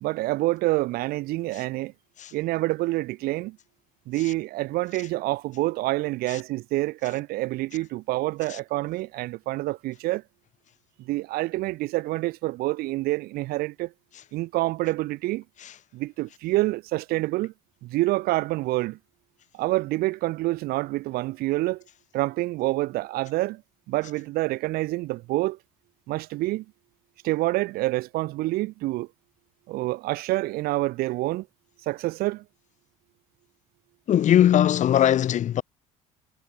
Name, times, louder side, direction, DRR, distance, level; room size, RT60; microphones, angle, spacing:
voice 1, 0.0-1.9 2.3-3.6 4.1-10.2 11.0-13.9 14.3-15.4 15.9-17.5 17.8-19.0 19.5-21.8 22.1-23.6 23.9-25.6 26.1-26.6 27.2-29.1 29.7-31.5 31.8-32.4, right 19 dB, 70° right, 2.1 m, -27 dB
voice 2, 34.1-35.6, left 11 dB, 50° left, 1.0 m, -19 dB
supercardioid pair, 75°, 16 cm